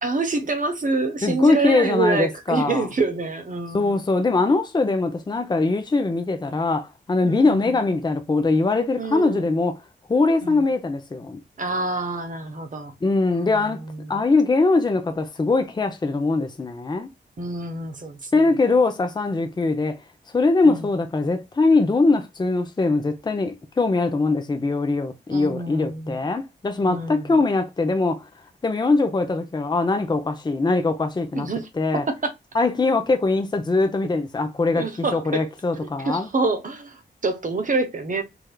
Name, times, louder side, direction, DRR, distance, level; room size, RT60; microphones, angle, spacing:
voice 1, 0.0-4.0 7.2-7.8 9.0-9.5 10.4-10.7 11.6-13.0 13.3-14.2 17.4-18.5 20.6-20.9 25.3-26.2 26.8-27.4 31.3-32.2 34.7-35.5 36.0-38.2, right 3 dB, 45° right, 0.9 m, -27 dB
voice 2, 1.2-2.9 3.7-9.7 10.1-11.4 13.0-13.8 14.1-17.1 18.3-20.0 20.3-28.3 28.6-31.5 31.8-32.0 32.5-36.3, left 3 dB, 25° left, 0.6 m, -22 dB
3.4 x 3.3 x 2.3 m
wide cardioid pair, 85°, 19 cm